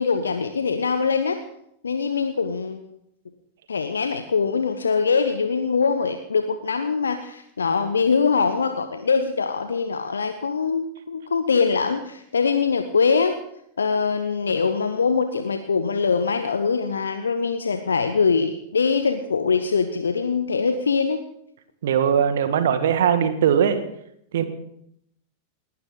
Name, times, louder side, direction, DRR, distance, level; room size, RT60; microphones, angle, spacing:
voice 1, 0.0-1.4 1.8-2.9 3.7-13.4 13.8-21.2, left 5 dB, 70° left, 8 dB, 1.0 m, -23 dB
voice 2, 21.8-23.8 24.3-24.4, right 8 dB, 60° right, 9 dB, 1.7 m, -20 dB
29.5 x 11.5 x 3.8 m, 0.74 s
figure-of-eight pair, 90°, 0 cm